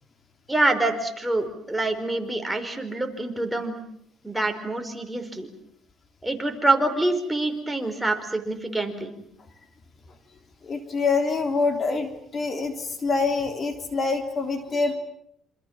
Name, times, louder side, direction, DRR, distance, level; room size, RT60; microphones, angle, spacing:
voice 1, 0.5-3.8 4.2-5.5 6.2-9.1, right 2 dB, 5° right, 5 dB, 4.9 m, -26 dB
voice 2, 10.6-15.0, left 4 dB, 40° left, 7 dB, 3.4 m, -25 dB
27.5 x 27.0 x 7.4 m, 0.71 s
cardioid pair, 90°, 0 cm